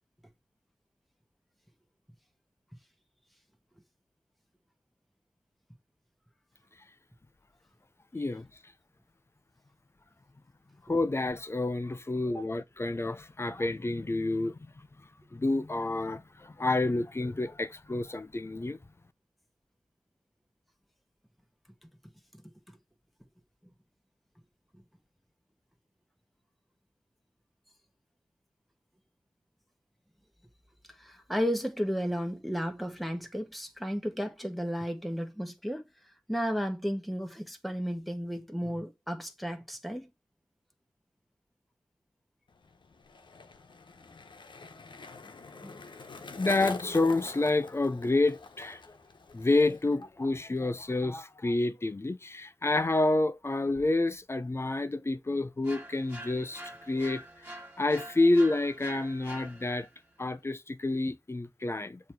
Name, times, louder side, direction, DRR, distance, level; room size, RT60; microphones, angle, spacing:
voice 1, 8.1-8.5 10.9-14.6 15.3-18.8 46.4-48.8 49.3-57.2 57.8-59.9 60.2-62.0, left 2 dB, 30° left, 0.6 m, -29 dB
voice 2, 31.0-35.8 36.3-40.1 45.6-45.8, equal, ahead, 1.4 m, -33 dB
Skateboard, 42.5-50.1 50.3-50.8, left 4 dB, 75° left, 0.9 m, -45 dB
sound 1, 55.6-60.0, right 1 dB, 25° right, 2.0 m, -46 dB
7.1 x 2.9 x 4.6 m
wide cardioid pair, 60°, 8 cm